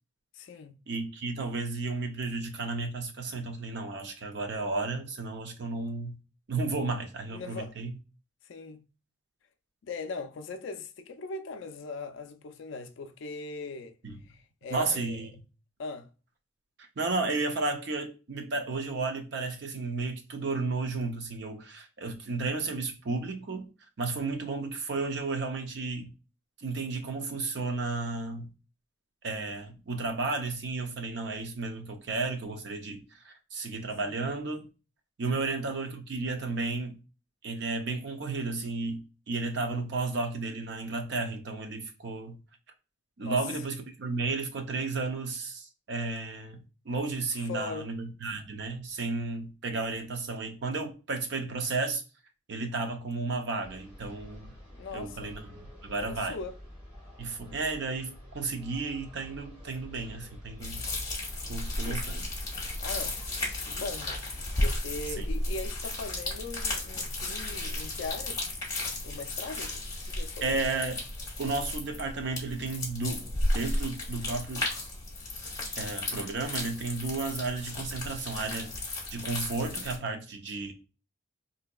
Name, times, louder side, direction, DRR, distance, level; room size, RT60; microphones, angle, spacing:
voice 1, 0.3-0.8 7.3-7.8 8.4-8.8 9.8-14.0 14.2-15.3 15.8-16.1 34.1-34.2 35.3-35.5 43.2-43.4 47.4-47.9 54.7-55.3 56.0-56.6 61.8-62.1 62.8-63.2 63.6-68.4 69.0-70.7, left 3 dB, 60° left, 0.4 m, -40 dB
voice 2, 0.9-6.2 6.5-7.9 14.0-14.1 14.7-15.3 16.8-23.7 24.0-26.1 26.6-28.5 29.2-34.7 35.2-37.0 37.4-42.4 43.2-46.6 46.9-52.0 52.5-54.5 54.9-56.4 57.2-60.8 61.5-62.2 65.2-65.3 69.5-69.6 70.4-71.0 71.4-73.2 73.5-74.7 75.8-78.7 79.1-80.7, right 3 dB, 55° right, 0.5 m, -33 dB
sound 1, 53.6-68.5, equal, 25° right, 1.3 m, -48 dB
sound 2, 60.6-80.0, left 2 dB, 15° left, 0.8 m, -34 dB
3.8 x 2.7 x 2.2 m
head